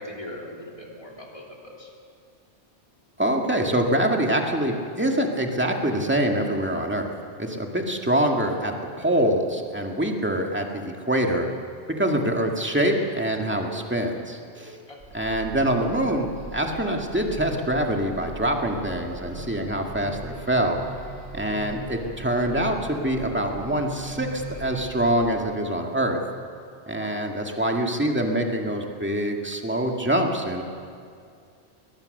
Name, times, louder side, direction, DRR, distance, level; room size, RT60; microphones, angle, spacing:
voice 1, 0.0-1.9 14.9-15.0 27.0-27.1, left 1 dB, 30° left, -1 dB, 3.4 m, -40 dB
voice 2, 3.2-7.1 7.4-11.5 12.0-14.8 15.1-20.8 21.3-26.2 26.9-30.6, right 1 dB, 10° right, 1 dB, 1.9 m, -25 dB
sound 1, 15.0-25.1, right 1 dB, 45° right, 7.0 m, -40 dB
21.5 x 20.0 x 6.7 m, 2.3 s
omnidirectional pair, 1.2 m